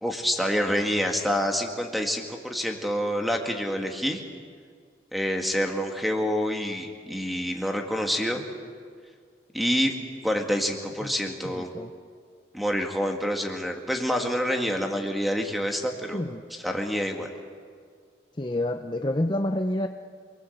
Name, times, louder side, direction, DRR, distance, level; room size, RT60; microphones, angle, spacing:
voice 1, 0.0-4.2 5.1-8.4 9.5-9.9 10.2-11.7 12.5-16.2 16.5-17.3, equal, ahead, 3 dB, 2.0 m, -27 dB
voice 2, 11.4-11.9 16.1-16.4 18.4-19.9, left 1 dB, 25° left, 6 dB, 0.7 m, -28 dB
27.0 x 20.0 x 8.0 m, 2.1 s
head